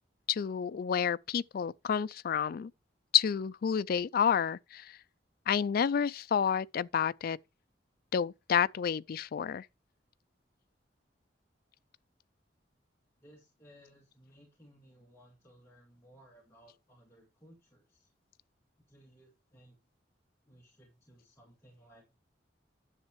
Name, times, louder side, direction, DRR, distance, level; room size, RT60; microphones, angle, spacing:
voice 1, 0.3-2.7 3.1-5.0 5.5-7.4 8.1-9.7, left 8 dB, 55° left, 0.3 m, -29 dB
voice 2, 13.2-18.1 18.9-19.8 20.5-22.2, equal, 15° left, 2.2 m, -60 dB
9.9 x 7.3 x 3.1 m
head